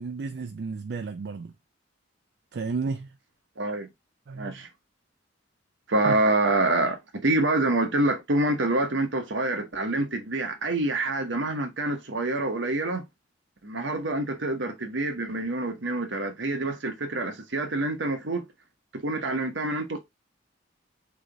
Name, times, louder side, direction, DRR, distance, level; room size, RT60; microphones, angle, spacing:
voice 1, 0.0-1.5 2.5-3.1 4.3-4.6 6.1-6.2, right 4 dB, 60° right, 0.4 m, -32 dB
voice 2, 3.6-3.9 4.3-4.7 5.9-13.0 13.6-18.5 18.9-20.0, right 2 dB, 75° right, 1.1 m, -26 dB
3.9 x 3.4 x 3.4 m
head